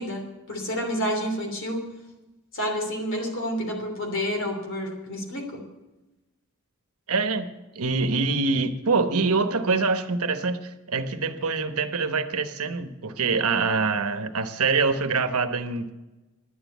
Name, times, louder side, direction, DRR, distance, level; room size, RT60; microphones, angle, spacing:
voice 1, 0.0-1.8 2.5-5.7, equal, 60° left, 3 dB, 3.1 m, -29 dB
voice 2, 7.1-7.5 7.7-15.9, right 4 dB, 75° right, 9 dB, 1.0 m, -25 dB
11.0 x 9.3 x 8.1 m, 1.1 s
head